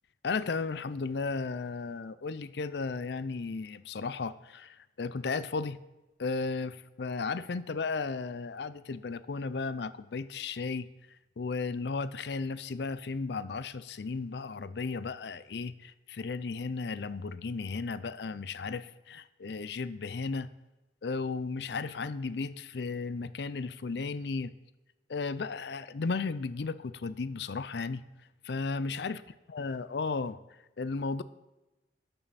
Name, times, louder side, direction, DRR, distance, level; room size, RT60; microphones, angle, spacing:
voice 1, 0.2-5.8 6.2-10.9 11.4-20.5 21.0-24.5 25.1-28.0 28.4-29.2 29.5-30.4 30.8-31.2, left 4 dB, 75° left, 15 dB, 0.5 m, -34 dB
13.0 x 9.1 x 4.2 m, 1.0 s
head